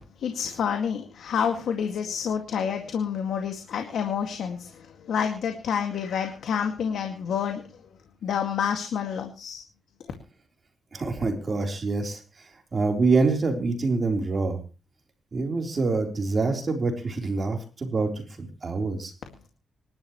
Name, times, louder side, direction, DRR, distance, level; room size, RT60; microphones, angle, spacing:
voice 1, 0.2-7.7 8.2-9.6, left 7 dB, 80° left, 4 dB, 2.1 m, -28 dB
voice 2, 10.9-12.2 12.7-14.6 15.3-19.1, right 3 dB, 35° right, 3 dB, 3.8 m, -26 dB
26.5 x 12.0 x 3.2 m, 0.33 s
cardioid pair, 125°, 0 cm